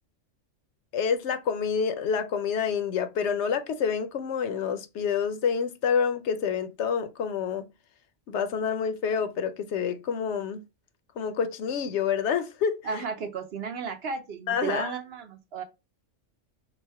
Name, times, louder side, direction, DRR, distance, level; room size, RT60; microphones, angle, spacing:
voice 1, 0.9-7.7 8.3-10.6 11.2-13.0 14.5-14.9, left 6 dB, 70° left, 0.8 m, -28 dB
voice 2, 12.8-15.6, right 5 dB, 60° right, 0.8 m, -33 dB
4.1 x 2.1 x 4.5 m
omnidirectional pair, 1.3 m